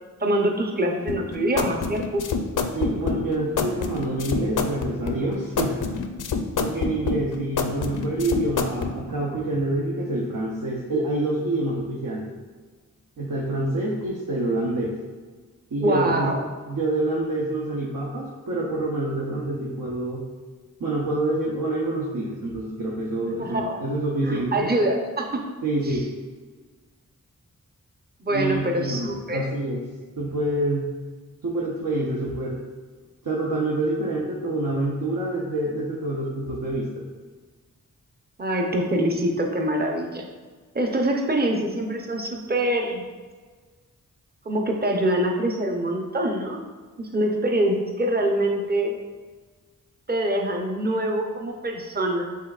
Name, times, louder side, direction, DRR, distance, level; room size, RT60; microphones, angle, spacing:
voice 1, 0.2-2.2 15.8-16.4 23.4-23.8 24.2-25.5 25.8-26.0 28.2-29.5 38.4-40.3 40.7-43.0 44.5-46.6 47.0-49.0 50.1-52.3, right 1 dB, 30° right, 2 dB, 0.6 m, -24 dB
sound 1, 1.1-8.9, left 5 dB, 65° left, 0.5 m, -27 dB
voice 2, 2.7-5.8 6.6-12.3 13.2-14.9 15.7-20.2 20.8-24.7 25.6-26.1 28.3-29.8 30.2-30.9 31.4-32.6 33.2-36.9, right 2 dB, 75° right, -4 dB, 0.7 m, -27 dB
5.5 x 3.6 x 2.4 m, 1.4 s
wide cardioid pair, 55°, 34 cm